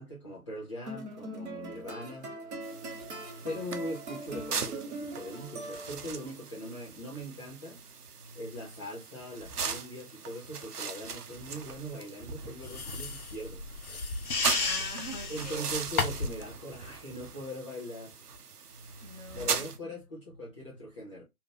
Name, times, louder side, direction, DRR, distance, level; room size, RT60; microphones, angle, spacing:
voice 1, 0.0-2.3 3.4-7.8 8.3-14.1 15.3-18.2 19.4-21.2, equal, 20° left, 0.7 m, -41 dB
sound 1, 0.9-6.2, right 2 dB, 50° right, 1.3 m, -41 dB
sound 2, 2.6-19.8, right 6 dB, 85° right, 0.7 m, -39 dB
sound 3, 12.6-16.4, left 4 dB, 70° left, 0.8 m, -33 dB
voice 2, 14.4-15.8 19.0-20.0, right 1 dB, 30° right, 1.0 m, -43 dB
2.8 x 2.5 x 3.2 m
figure-of-eight pair, 145°, 45 cm